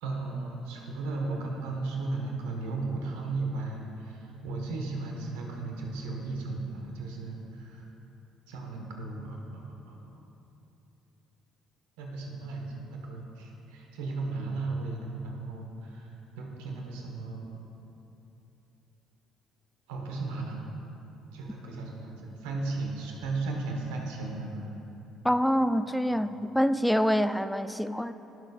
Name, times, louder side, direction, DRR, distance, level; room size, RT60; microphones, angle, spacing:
voice 1, 0.0-7.9 8.5-10.2 12.0-17.6 19.9-20.6 21.3-24.7 26.1-26.2, right 3 dB, 70° right, 0 dB, 1.2 m, -35 dB
voice 2, 25.2-28.1, equal, ahead, 12 dB, 0.3 m, -26 dB
15.5 x 6.5 x 2.4 m, 2.9 s
figure-of-eight pair, 50°, 0 cm